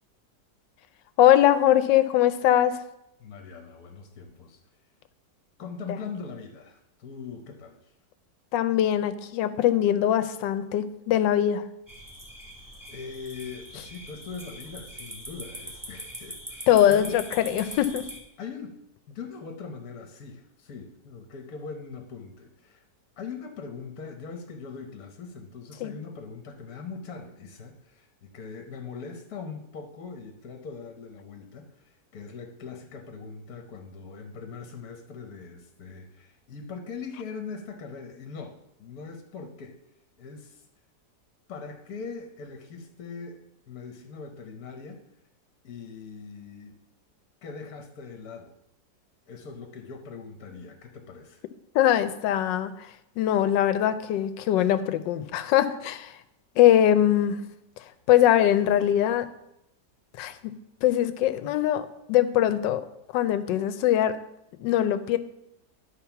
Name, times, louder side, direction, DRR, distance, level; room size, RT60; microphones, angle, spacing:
voice 1, 1.2-2.8 8.5-11.6 16.7-18.1 25.8-25.9 51.7-56.2 56.6-57.4 57.8-59.3 60.2-60.5 60.8-62.9 63.1-64.2 64.6-65.2, left 11 dB, 85° left, 12 dB, 1.3 m, -22 dB
voice 2, 3.2-4.6 5.6-7.9 12.9-17.2 18.4-18.8 19.1-22.9 23.2-39.8 40.2-40.6 41.5-45.0 45.6-46.8 47.4-48.6 49.3-51.4, left 5 dB, 60° left, 4 dB, 1.3 m, -41 dB
sound 1, 11.9-18.2, equal, 10° right, 1.3 m, -42 dB
11.0 x 4.2 x 5.8 m, 0.83 s
omnidirectional pair, 1.9 m